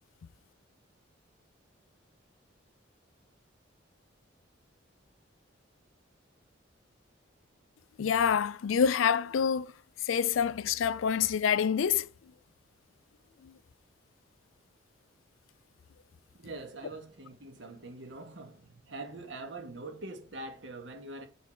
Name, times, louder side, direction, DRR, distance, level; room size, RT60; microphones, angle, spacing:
voice 1, 8.0-9.7 10.0-12.1 13.4-13.5, left 7 dB, 85° left, 0.4 m, -27 dB
voice 2, 16.4-21.3, right 2 dB, 70° right, 1.4 m, -43 dB
8.4 x 4.0 x 4.4 m
head